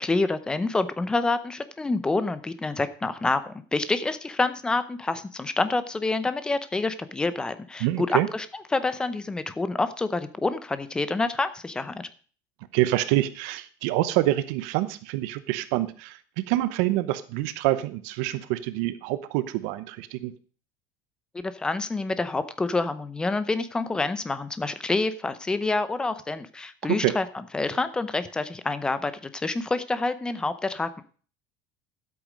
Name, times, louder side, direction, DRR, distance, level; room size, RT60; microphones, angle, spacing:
voice 1, 0.0-12.1 21.3-31.0, left 3 dB, 10° left, 13 dB, 0.7 m, -27 dB
voice 2, 7.8-8.3 12.7-16.2 16.5-20.3 27.0-27.1, right 16 dB, 70° right, 13 dB, 0.9 m, -26 dB
12.0 x 8.2 x 5.1 m, 0.41 s
cardioid pair, 175°, 9 cm